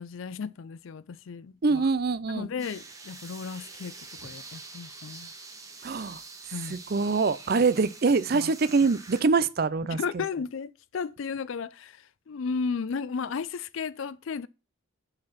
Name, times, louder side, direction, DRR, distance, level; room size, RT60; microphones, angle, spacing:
voice 1, 0.0-1.9 2.3-5.3 6.5-6.8 8.3-8.5 9.9-14.5, left 5 dB, 65° left, 0.4 m, -34 dB
voice 2, 1.6-2.5 5.8-6.2 6.9-10.2, right 4 dB, 45° right, 0.5 m, -24 dB
sound 1, 2.6-9.2, right 4 dB, 15° right, 1.0 m, -45 dB
7.7 x 4.2 x 5.7 m
head